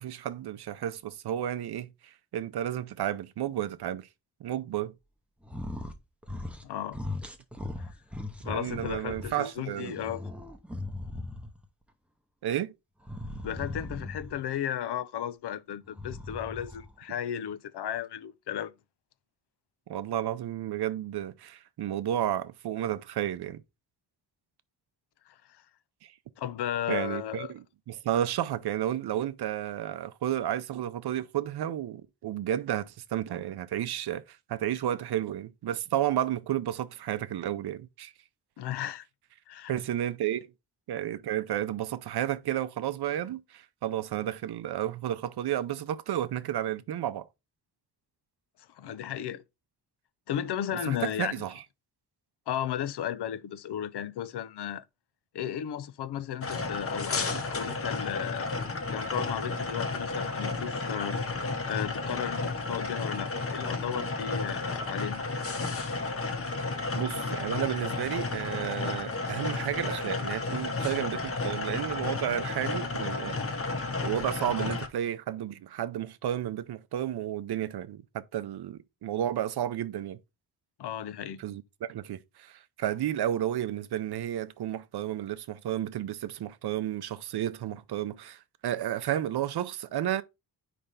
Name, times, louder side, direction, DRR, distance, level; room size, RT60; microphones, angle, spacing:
voice 1, 0.0-4.1 4.4-4.9 8.4-10.0 12.4-12.7 19.9-23.6 26.0-26.2 26.9-38.1 39.7-40.5 40.9-47.3 50.8-51.5 66.9-73.5 74.0-80.2 81.4-90.2, right 11 dB, 70° right, 0.6 m, -32 dB
sound 1, 5.4-6.0 6.2-6.7 6.9-9.3 9.7-11.7 13.0-14.4 15.9-16.9, left 2 dB, 5° right, 0.7 m, -38 dB
voice 2, 6.6-7.0 7.8-7.9 8.4-10.2 13.4-18.7 25.3-25.4 26.4-27.5 38.6-39.1 39.5-39.7 48.7-49.4 50.3-51.4 52.5-54.9 55.3-58.5 58.9-61.2 61.7-65.2 80.8-81.4, left 10 dB, 75° left, 0.6 m, -34 dB
sound 2, 56.4-74.9, left 3 dB, 35° left, 0.9 m, -32 dB
5.0 x 3.3 x 5.5 m
wide cardioid pair, 155°, 40 cm